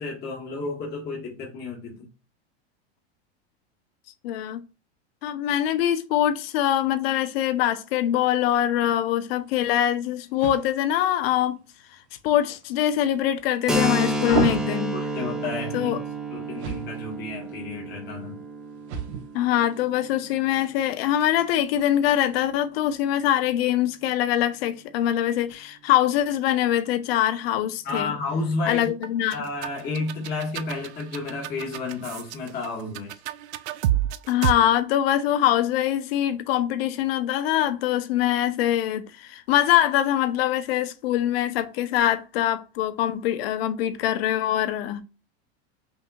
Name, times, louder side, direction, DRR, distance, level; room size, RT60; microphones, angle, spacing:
voice 1, 0.0-2.1 14.3-14.6 14.9-16.0 16.3-18.4 27.8-28.9 29.3-33.2, left 3 dB, 30° left, 1.6 m, -31 dB
voice 2, 4.2-4.6 5.2-11.6 12.2-14.9 15.7-16.0 19.3-28.1 28.7-29.4 34.3-45.0, left 11 dB, 65° left, 0.7 m, -23 dB
sound 1, 9.1-22.5, right 6 dB, 75° right, 1.3 m, -37 dB
Keyboard (musical), 13.7-21.0, right 1 dB, ahead, 0.5 m, -30 dB
sound 2, 29.0-34.5, right 13 dB, 90° right, 0.5 m, -29 dB
5.5 x 2.8 x 2.3 m
supercardioid pair, 135°, 33 cm